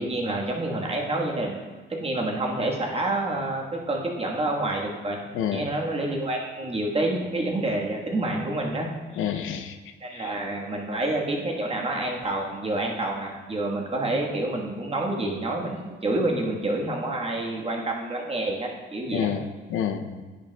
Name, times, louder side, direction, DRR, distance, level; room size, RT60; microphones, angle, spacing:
voice 1, 0.0-5.2 5.5-8.9 10.0-19.3, right 2 dB, 30° right, 0 dB, 1.3 m, -28 dB
voice 2, 5.3-5.7 9.2-9.8 10.1-10.4 19.1-20.2, left 8 dB, 85° left, 7 dB, 0.6 m, -29 dB
10.0 x 6.3 x 2.2 m, 1.3 s
cardioid pair, 90°, 20 cm